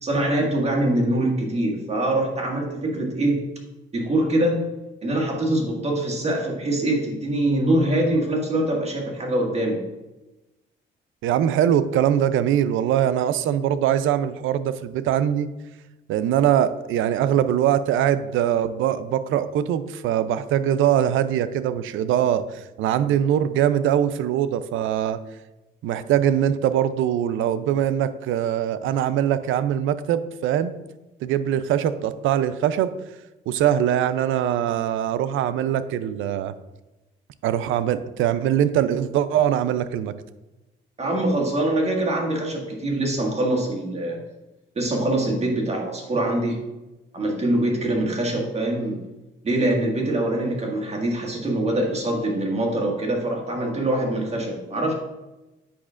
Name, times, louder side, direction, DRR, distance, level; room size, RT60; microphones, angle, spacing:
voice 1, 0.0-3.5 3.9-4.6 5.0-9.8 41.0-44.2 44.8-46.6 47.1-49.0 49.4-54.9, right 1 dB, 35° right, -1 dB, 1.8 m, -24 dB
voice 2, 11.2-15.5 16.1-25.2 25.8-30.7 31.2-32.9 33.5-36.5 37.4-40.1, right 10 dB, 85° right, 13 dB, 0.4 m, -22 dB
8.5 x 5.7 x 2.5 m, 1.0 s
cardioid pair, 90°, 20 cm